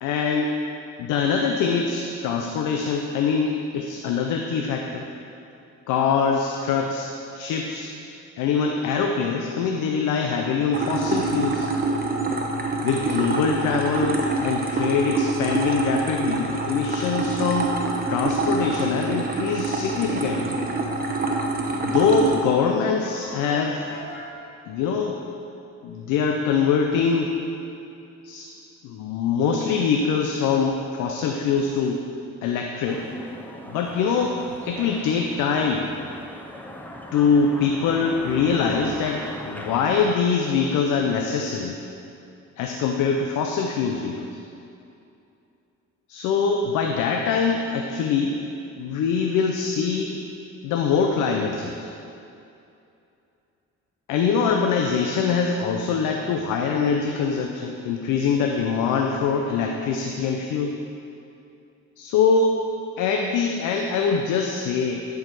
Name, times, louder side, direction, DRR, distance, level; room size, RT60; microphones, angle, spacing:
voice 1, 0.0-0.5 1.0-5.1 5.9-7.9 8.4-11.7 12.8-17.7 18.1-20.6 21.8-23.8 24.7-25.2 25.8-27.4 28.2-28.5 28.8-32.0 32.4-33.0 33.7-35.9 37.1-41.8 42.6-44.3 46.1-48.4 48.8-50.2 50.6-51.9 54.1-60.8 62.0-62.6 63.0-65.0, left 5 dB, 90° left, 2 dB, 0.6 m, -23 dB
sound 1, 10.7-22.4, right 3 dB, 30° right, 1.1 m, -26 dB
sound 2, 18.3-24.3, left 1 dB, 65° left, 1.6 m, -40 dB
sound 3, 32.9-40.0, equal, 5° left, 0.7 m, -39 dB
10.5 x 4.8 x 4.7 m, 2.7 s
cardioid pair, 75°, 30 cm